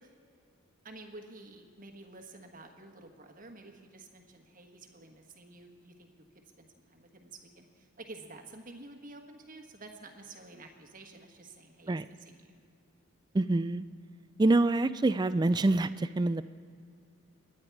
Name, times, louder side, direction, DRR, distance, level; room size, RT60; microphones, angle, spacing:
voice 1, 0.8-6.2 6.6-12.6, right 2 dB, 40° right, 4 dB, 1.3 m, -50 dB
voice 2, 13.3-13.8 14.4-16.5, right 2 dB, 20° right, 13 dB, 0.3 m, -26 dB
23.0 x 9.7 x 4.7 m, 2.4 s
head